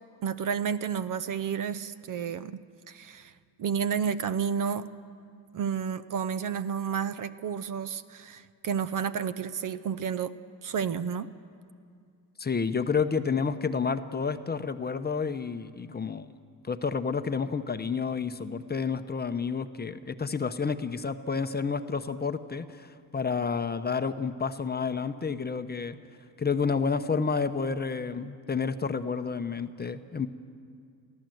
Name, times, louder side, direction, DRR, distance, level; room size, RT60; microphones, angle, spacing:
voice 1, 0.2-2.6 2.9-3.3 3.6-4.9 5.5-10.3 10.6-11.3, right 7 dB, 45° right, 14 dB, 0.7 m, -31 dB
voice 2, 12.4-16.3 16.7-26.0 26.4-30.3, left 5 dB, 20° left, 9 dB, 0.8 m, -30 dB
23.0 x 15.5 x 7.8 m, 2.3 s
supercardioid pair, 80°, 44 cm